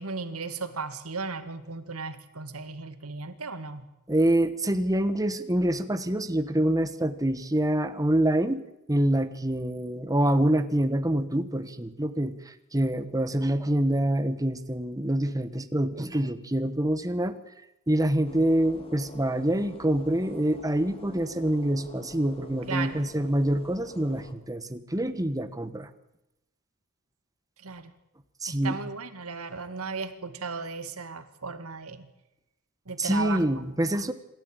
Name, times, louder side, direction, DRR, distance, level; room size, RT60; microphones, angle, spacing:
voice 1, 0.0-3.9 22.7-23.0 27.6-27.9 28.5-32.1 32.9-33.6, right 4 dB, 80° right, 10 dB, 2.1 m, -36 dB
voice 2, 4.1-8.6 8.9-17.4 17.9-25.9 28.4-28.8 33.0-34.1, right 1 dB, 15° right, 11 dB, 1.3 m, -26 dB
sound 1, 18.2-24.3, equal, 25° left, 2.0 m, -47 dB
27.0 x 13.0 x 9.0 m, 0.91 s
head